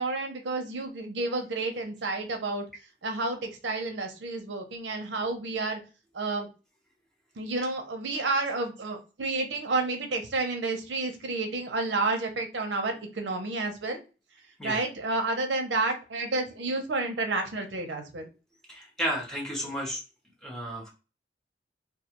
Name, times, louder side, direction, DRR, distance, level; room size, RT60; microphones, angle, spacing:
voice 1, 0.0-2.7 3.0-5.8 6.1-6.5 7.4-14.0 14.6-18.3, right 3 dB, 85° right, 4 dB, 0.6 m, -30 dB
voice 2, 18.7-20.0 20.4-20.9, equal, 5° left, -2 dB, 0.8 m, -32 dB
2.3 x 2.3 x 2.8 m, 0.32 s
head